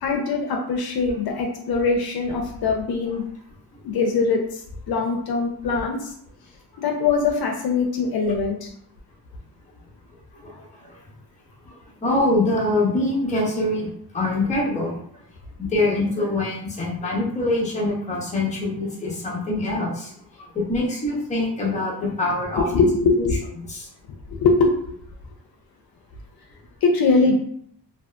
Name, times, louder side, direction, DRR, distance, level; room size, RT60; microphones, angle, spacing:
voice 1, 0.0-3.3 3.8-4.6 4.9-6.1 6.8-8.7 22.7-23.4 24.3-24.7 26.8-27.3, left 4 dB, 65° left, 1 dB, 0.5 m, -22 dB
voice 2, 10.4-10.9 11.7-13.9 14.1-15.0 15.6-20.1 20.4-22.6 23.7-23.9, left 2 dB, 20° left, -4 dB, 0.7 m, -24 dB
2.6 x 2.3 x 2.2 m, 0.66 s
wide cardioid pair, 155°, 39 cm